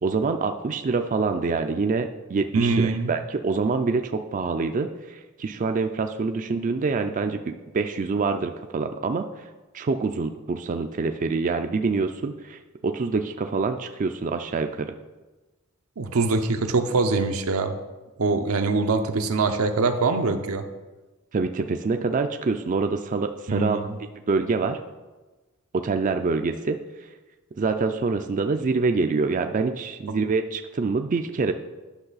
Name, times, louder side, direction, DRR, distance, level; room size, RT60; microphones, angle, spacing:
voice 1, 0.0-9.4 9.7-14.9 21.3-23.8 24.3-24.8 25.7-26.8 27.6-31.5, right 4 dB, 35° right, 6 dB, 0.4 m, -26 dB
voice 2, 2.5-3.1 16.0-17.8 18.2-20.7 23.5-24.0, right 3 dB, 80° right, 7 dB, 0.7 m, -23 dB
10.5 x 6.1 x 4.0 m, 1.2 s
head